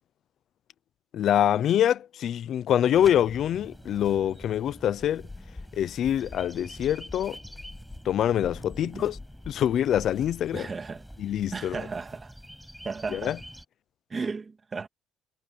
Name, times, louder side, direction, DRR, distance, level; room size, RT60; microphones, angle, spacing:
voice 1, 1.1-5.3 5.7-7.4 8.0-9.2 9.5-10.7 11.2-11.8 13.1-13.4, left 10 dB, 55° left, 0.8 m, -25 dB
sound 1, 2.9-13.6, equal, ahead, 5.9 m, -46 dB
sound 2, 5.1-10.5, left 3 dB, 15° left, 7.3 m, -46 dB
voice 2, 8.8-9.1 10.5-11.0 11.5-12.3 12.8-13.4 14.1-14.9, right 4 dB, 25° right, 2.0 m, -35 dB
cardioid pair, 135°, 0 cm